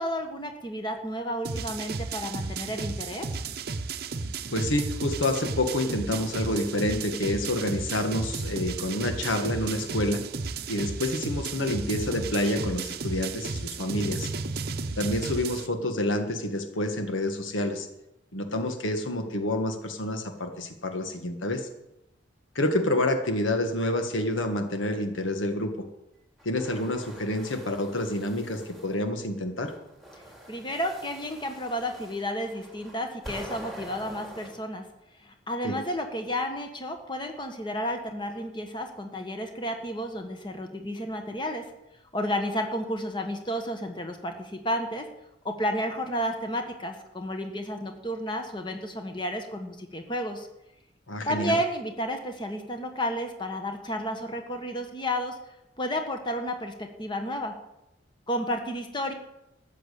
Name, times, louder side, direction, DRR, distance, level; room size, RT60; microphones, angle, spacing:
voice 1, 0.0-3.3 30.5-34.8 35.2-41.6 42.1-45.0 45.4-50.5 51.2-55.4 55.8-57.5 58.3-59.1, equal, 25° left, 5 dB, 1.6 m, -32 dB
sound 1, 1.4-15.7, right 4 dB, 50° right, 0.8 m, -33 dB
voice 2, 4.5-10.2 10.7-14.3 15.0-17.9 18.3-21.7 22.5-25.7 26.4-29.7 35.6-35.8 51.1-51.6, left 1 dB, 85° left, 6 dB, 1.6 m, -28 dB
sound 2, 26.4-29.0 29.6-34.5, right 1 dB, ahead, 2.7 m, -45 dB
13.5 x 7.4 x 8.5 m, 0.88 s
head